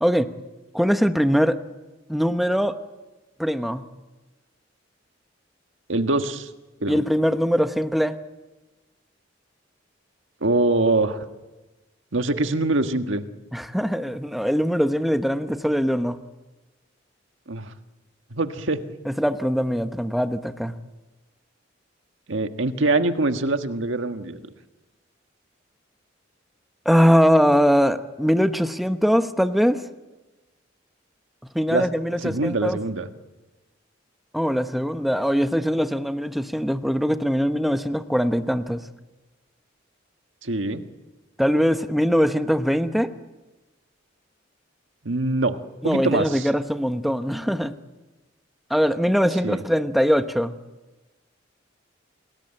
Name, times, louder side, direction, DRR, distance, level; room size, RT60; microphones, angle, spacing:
voice 1, 0.7-1.6 2.1-2.7 3.4-3.8 6.9-8.1 13.5-16.2 19.1-20.7 26.8-29.8 31.5-32.8 34.3-38.8 41.4-43.1 45.8-47.7 48.7-50.6, equal, ahead, 8 dB, 1.0 m, -21 dB
voice 2, 5.9-6.5 6.8-7.0 10.4-11.2 12.1-13.2 17.5-17.7 18.3-18.8 22.3-24.5 31.7-31.9 32.2-33.1 40.4-40.8 45.0-46.5 49.4-49.6, right 2 dB, 75° right, 7 dB, 1.6 m, -24 dB
28.0 x 20.0 x 9.0 m, 1.1 s
head